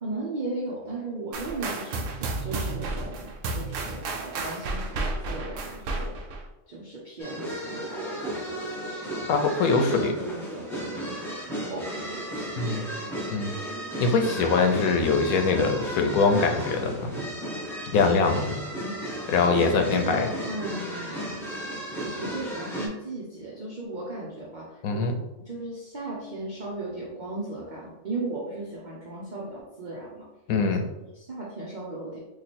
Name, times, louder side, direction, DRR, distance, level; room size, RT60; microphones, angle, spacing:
voice 1, 0.0-6.2 6.7-8.6 8.9-9.2 9.7-11.2 11.6-12.8 18.4-19.0 19.4-21.6 22.0-25.1 25.4-30.3 30.8-32.2, right 2 dB, 45° right, -4 dB, 0.7 m, -36 dB
sound 1, 1.3-6.4, right 2 dB, 70° right, 0.9 m, -32 dB
sound 2, 7.2-22.9, right 1 dB, ahead, 0.5 m, -34 dB
voice 2, 9.3-10.1 12.6-12.9 13.3-13.5 14.0-17.2 17.9-18.6 19.3-20.3 24.8-25.2 30.5-30.8, left 4 dB, 80° left, 5 dB, 1.1 m, -23 dB
3.2 x 2.5 x 4.1 m, 1.0 s
omnidirectional pair, 1.5 m